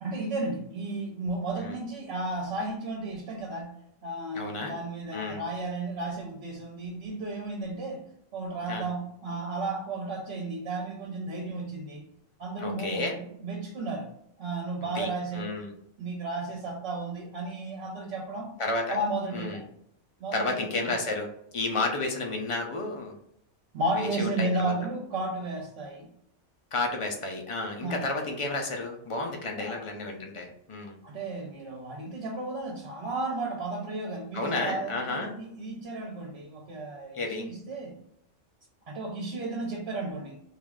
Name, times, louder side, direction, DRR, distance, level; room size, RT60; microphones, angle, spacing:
voice 1, 0.0-3.8 4.0-12.1 12.4-14.1 14.4-15.5 16.0-18.5 18.9-19.6 20.2-20.9 23.7-26.1 27.8-28.0 29.5-29.8 31.0-37.9 38.9-40.4, right 2 dB, 60° right, -1 dB, 0.9 m, -33 dB
voice 2, 4.3-4.7 5.1-5.4 8.7-8.9 12.6-13.1 14.9-15.1 15.3-15.7 18.6-19.0 19.3-19.6 20.3-21.3 21.5-23.1 24.0-24.5 26.7-31.0 34.3-35.3 37.1-37.5, left 2 dB, 50° left, 2 dB, 0.4 m, -31 dB
3.0 x 2.5 x 3.6 m, 0.72 s
omnidirectional pair, 1.3 m